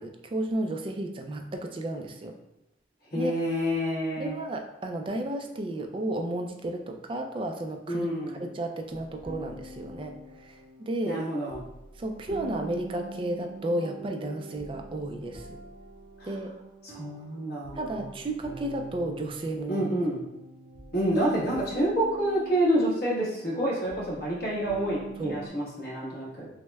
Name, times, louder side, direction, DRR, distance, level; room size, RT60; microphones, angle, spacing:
voice 1, 0.0-2.3 3.1-3.3 4.2-8.1 8.4-11.2 12.0-15.6 16.2-16.5 17.8-19.9 25.2-25.4, right 1 dB, 30° right, 4 dB, 0.3 m, -33 dB
voice 2, 3.1-4.3 7.9-8.4 11.1-11.6 16.2-16.3 16.8-18.1 19.7-20.2 20.9-26.5, right 1 dB, 55° left, -5 dB, 1.2 m, -28 dB
sound 1, 8.9-25.5, right 2 dB, 90° right, 1.3 m, -45 dB
6.1 x 2.1 x 2.2 m, 0.87 s
head